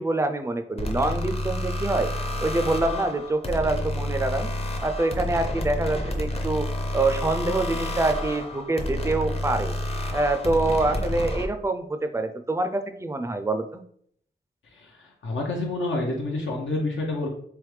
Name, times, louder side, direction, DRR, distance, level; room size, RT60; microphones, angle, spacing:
voice 1, 0.0-2.1 2.4-4.5 4.8-6.7 6.9-9.8 10.1-13.8, right 2 dB, 15° right, 7 dB, 0.3 m, -25 dB
sound 1, 0.8-11.5, left 1 dB, 30° left, 0.6 m, -29 dB
voice 2, 14.7-17.3, left 2 dB, 85° left, -1 dB, 0.7 m, -28 dB
3.4 x 3.3 x 3.2 m, 0.65 s
wide cardioid pair, 100°, 19 cm